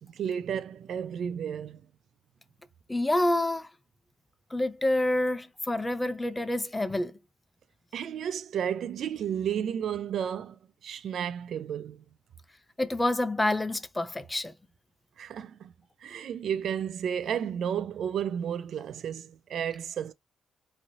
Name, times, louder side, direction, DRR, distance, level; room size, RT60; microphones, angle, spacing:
voice 1, 0.0-1.8 7.9-10.6 10.8-12.0 15.2-15.7 16.0-20.1, right 8 dB, 65° right, 0.3 m, -32 dB
voice 2, 2.9-3.7 4.5-7.2 12.8-14.5, left 1 dB, 15° left, 0.4 m, -27 dB
3.0 x 2.6 x 2.6 m
cardioid pair, 90°, 0 cm